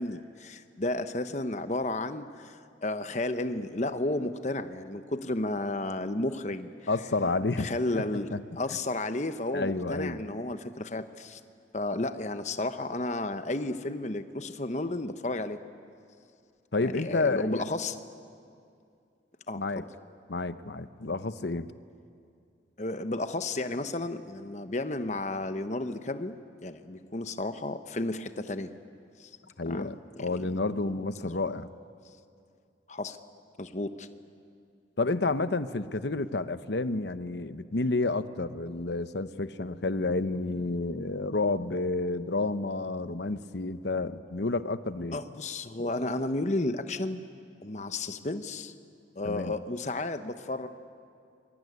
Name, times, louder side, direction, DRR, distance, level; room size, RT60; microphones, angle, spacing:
voice 1, 0.0-6.7 7.6-8.3 8.6-11.4 11.7-15.6 16.8-17.9 19.5-19.8 22.8-28.7 29.2-29.3 29.7-29.9 30.3-30.4 32.9-33.2 33.6-34.1 45.1-47.3 47.6-48.7 49.2-50.7, left 2 dB, 40° left, 10 dB, 1.0 m, -32 dB
voice 2, 6.9-8.4 9.5-10.2 16.7-17.7 19.5-19.8 20.3-21.7 29.6-31.7 35.0-45.2 49.2-49.5, left 3 dB, 65° left, 12 dB, 0.9 m, -30 dB
26.5 x 22.5 x 9.6 m, 2.4 s
head